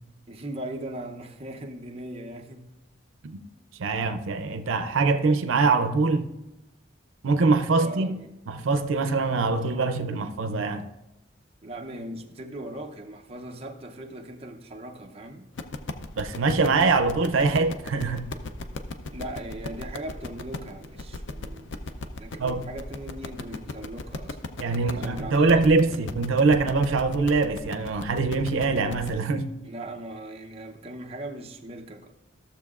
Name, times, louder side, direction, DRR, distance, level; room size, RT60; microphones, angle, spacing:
voice 1, 0.3-2.6 7.8-8.4 11.6-15.5 19.1-21.9 22.2-24.4 24.8-25.7 29.6-32.1, right 1 dB, 30° right, 0.6 m, -39 dB
voice 2, 3.8-6.3 7.2-8.2 8.5-10.8 16.2-18.3 22.4-22.7 24.6-29.5, right 3 dB, 85° right, 0.5 m, -23 dB
sound 1, 15.6-29.2, left 3 dB, 65° left, 0.5 m, -37 dB
14.5 x 6.9 x 2.4 m
head